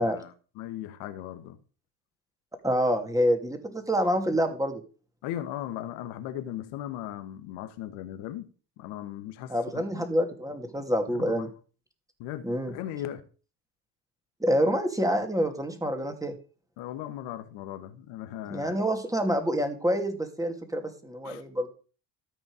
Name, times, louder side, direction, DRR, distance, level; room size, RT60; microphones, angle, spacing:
voice 1, 0.0-1.6 5.2-8.5 8.8-10.1 11.1-11.5 12.2-13.2 16.8-18.7 21.2-21.4, left 12 dB, 80° left, 1.4 m, -38 dB
voice 2, 2.6-4.8 9.5-11.5 12.4-12.7 14.4-16.3 18.5-21.7, equal, 5° right, 2.5 m, -27 dB
13.5 x 5.2 x 5.0 m
hypercardioid pair, 65°, 48 cm